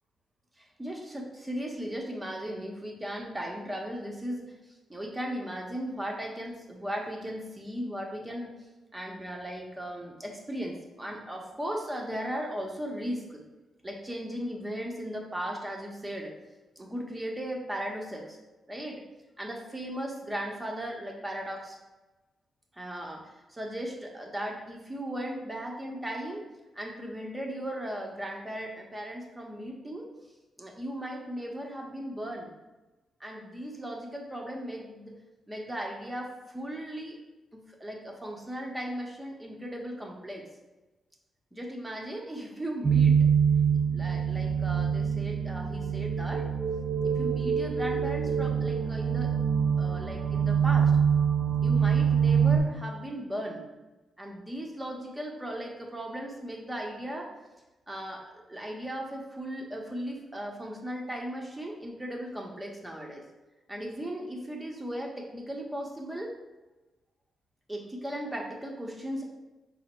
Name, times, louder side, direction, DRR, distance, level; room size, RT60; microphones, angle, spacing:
voice 1, 0.6-4.5 4.9-8.5 8.9-13.4 13.8-16.3 16.8-18.4 18.7-19.0 19.4-21.8 22.7-23.2 23.5-26.4 26.7-30.1 30.6-32.5 33.2-35.1 35.5-37.2 37.5-40.4 41.5-43.3 43.7-46.5 47.0-49.3 49.8-50.9 51.6-53.6 54.2-57.3 57.9-58.2 58.5-63.2 63.7-66.3 67.7-69.2, equal, 15° right, 0 dB, 0.9 m, -37 dB
sound 1, 42.8-52.6, right 7 dB, 45° right, 0.4 m, -25 dB
5.0 x 2.1 x 4.3 m, 1.1 s
cardioid pair, 90°, 0 cm